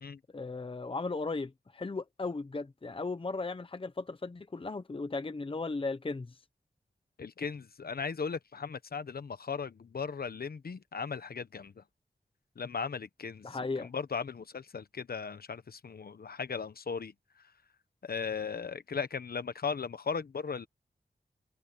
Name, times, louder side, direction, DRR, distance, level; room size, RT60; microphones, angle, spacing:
voice 1, 0.3-6.4 13.4-13.9, left 3 dB, 35° left, 0.8 m, -36 dB
voice 2, 7.2-11.8 12.6-13.5 13.8-17.1 18.0-20.7, left 5 dB, 70° left, 1.1 m, -37 dB
wide cardioid pair, 85°, 16 cm